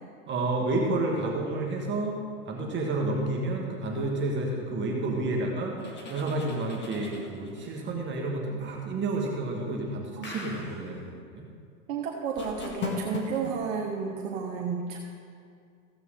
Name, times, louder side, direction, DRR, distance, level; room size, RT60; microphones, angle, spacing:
voice 1, 0.3-2.2 2.5-11.5, right 2 dB, 25° right, 0 dB, 1.7 m, -30 dB
sound 1, 5.8-7.7 10.2-10.9 12.4-13.5, left 4 dB, 25° left, 1.8 m, -37 dB
voice 2, 11.9-15.0, right 6 dB, 60° right, -1 dB, 1.5 m, -32 dB
15.5 x 8.0 x 3.8 m, 2.3 s
hypercardioid pair, 125°, 45 cm